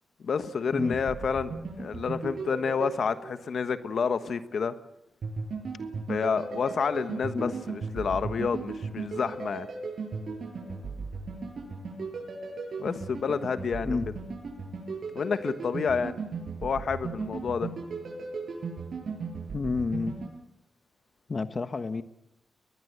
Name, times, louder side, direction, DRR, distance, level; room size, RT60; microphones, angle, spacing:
voice 1, 0.2-1.5 1.8-4.7 6.1-9.7 12.8-14.0 15.1-16.1 16.6-17.7, left 6 dB, 65° left, 11 dB, 1.3 m, -29 dB
sound 1, 0.7-3.7 5.2-20.3, right 4 dB, 65° right, 7.3 m, -37 dB
voice 2, 19.5-20.2 21.3-22.0, left 4 dB, 40° left, 10 dB, 1.2 m, -29 dB
22.5 x 21.0 x 8.1 m, 0.81 s
cardioid pair, 90°, 0 cm